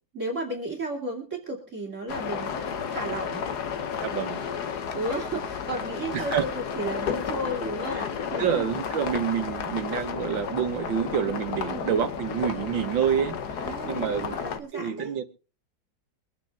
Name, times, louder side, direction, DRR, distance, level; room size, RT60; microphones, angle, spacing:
voice 1, 0.1-2.5 2.9-3.5 4.9-8.9 11.7-12.0 13.6-15.1, right 1 dB, 40° right, 3.1 m, -34 dB
sound 1, 2.1-14.6, left 7 dB, 60° left, 1.6 m, -32 dB
voice 2, 4.0-4.4 6.1-6.4 8.4-14.4 14.7-15.2, right 8 dB, 80° right, 2.0 m, -28 dB
24.0 x 9.1 x 3.5 m
omnidirectional pair, 2.1 m